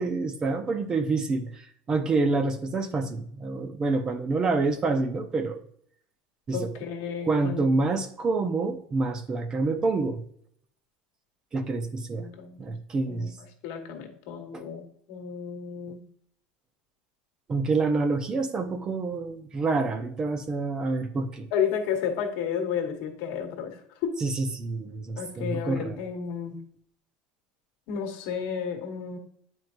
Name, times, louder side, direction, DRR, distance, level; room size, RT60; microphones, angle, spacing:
voice 1, 0.0-5.6 6.5-6.7 7.2-10.2 11.5-12.3 12.6-13.3 14.5-14.6 17.5-21.5 24.2-26.0, right 3 dB, 20° right, 8 dB, 0.5 m, -27 dB
voice 2, 6.5-7.9 12.2-12.7 13.1-13.3 13.6-16.0 21.5-23.7 24.0-24.2 25.1-26.6 27.9-29.2, left 7 dB, 65° left, 4 dB, 1.3 m, -32 dB
9.1 x 4.6 x 2.6 m, 0.65 s
cardioid pair, 155°, 3 cm